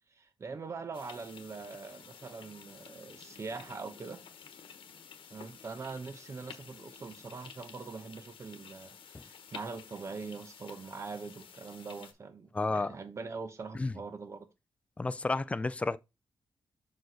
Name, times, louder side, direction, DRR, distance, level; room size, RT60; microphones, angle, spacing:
voice 1, 0.1-4.2 5.3-14.5, right 4 dB, 35° right, 0.9 m, -43 dB
sound 1, 0.9-12.1, left 7 dB, 80° left, 1.0 m, -52 dB
voice 2, 12.5-12.9 13.7-13.9 15.0-16.0, left 3 dB, 15° left, 0.3 m, -31 dB
6.2 x 4.7 x 3.9 m
wide cardioid pair, 175°, 9 cm